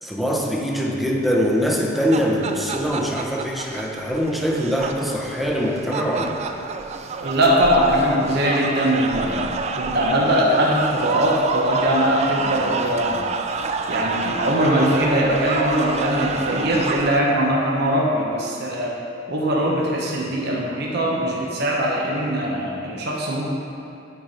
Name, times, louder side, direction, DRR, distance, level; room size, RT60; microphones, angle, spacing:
voice 1, 0.0-6.4, equal, ahead, -2 dB, 0.7 m, -23 dB
sound 1, 1.7-17.2, right 4 dB, 35° right, 0.3 m, -29 dB
voice 2, 7.2-13.3 13.9-18.9 19.3-23.4, equal, 55° right, -3 dB, 1.0 m, -21 dB
9.1 x 4.3 x 5.1 m, 2.6 s
head